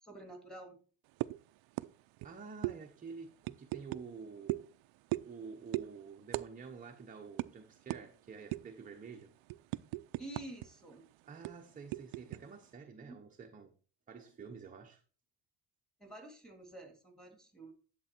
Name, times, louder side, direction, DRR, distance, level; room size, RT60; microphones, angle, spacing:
voice 1, 0.0-0.8 10.2-11.0 13.0-13.2 16.0-17.7, right 1 dB, ahead, 2.2 m, -49 dB
sound 1, 1.2-1.4 1.8-1.9 2.2-2.3 2.6-2.8 3.4-4.0 4.5-4.7 5.1-5.4 5.7-5.9 6.3-6.5 6.8-6.9 7.4-7.5 7.9-8.0 8.5-8.8 9.2-10.7 10.9-11.0 11.4-12.4, right 19 dB, 85° right, 0.6 m, -37 dB
voice 2, 2.2-4.7 5.3-9.3 11.2-13.7 14.1-15.0, right 5 dB, 20° right, 0.8 m, -49 dB
11.0 x 7.6 x 4.4 m
cardioid pair, 170°, 45 cm